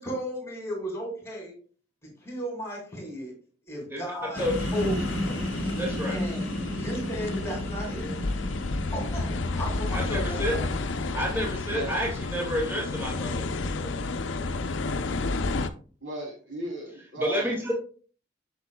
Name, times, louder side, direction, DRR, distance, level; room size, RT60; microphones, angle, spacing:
voice 1, 0.0-1.5 2.0-3.3 3.7-4.5 4.7-5.4 6.1-6.5 6.8-8.3 8.9-10.7, equal, 15° left, 0 dB, 2.5 m, -35 dB
voice 2, 3.9-4.9 5.8-6.2 9.9-10.5 11.1-14.1 17.2-17.7, equal, 10° right, -2 dB, 2.0 m, -30 dB
sound 1, 4.2-11.8, equal, 30° right, 2.7 m, -34 dB
sound 2, 4.4-15.7, left 3 dB, 70° left, 0.6 m, -31 dB
voice 3, 11.7-12.0 16.0-17.6, right 1 dB, 80° right, 0 dB, 3.1 m, -36 dB
8.1 x 6.5 x 2.3 m, 0.40 s
head